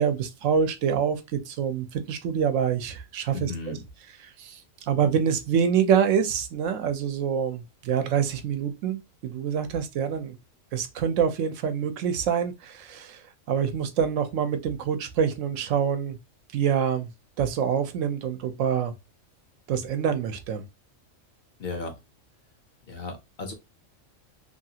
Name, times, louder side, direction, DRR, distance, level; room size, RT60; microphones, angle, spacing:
voice 1, 0.0-3.8 4.4-10.3 10.7-13.2 13.5-16.2 16.5-17.1 17.4-18.9 19.7-20.6, right 7 dB, 75° right, 0.9 m, -26 dB
voice 2, 3.3-3.8 21.6-22.0 22.9-23.5, left 3 dB, 55° left, 0.8 m, -35 dB
3.0 x 2.3 x 2.7 m
omnidirectional pair, 1.4 m